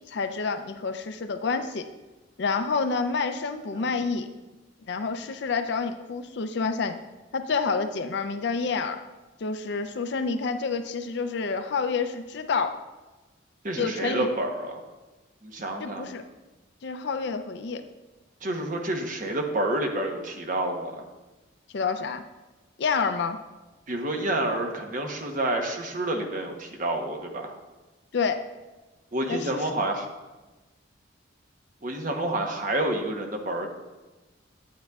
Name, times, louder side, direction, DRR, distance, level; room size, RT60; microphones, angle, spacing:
voice 1, 0.1-1.9 2.4-4.3 4.9-7.0 7.3-9.0 9.4-12.8 13.8-14.3 15.8-16.2 16.8-17.8 21.7-22.2 22.8-23.4 28.1-28.4 29.3-29.5, left 4 dB, 60° left, 8 dB, 0.5 m, -28 dB
voice 2, 13.6-14.8 15.4-16.1 18.4-21.1 23.9-27.5 29.1-30.1 31.8-33.7, right 1 dB, 40° right, 2 dB, 0.9 m, -29 dB
9.3 x 8.7 x 2.4 m, 1.2 s
head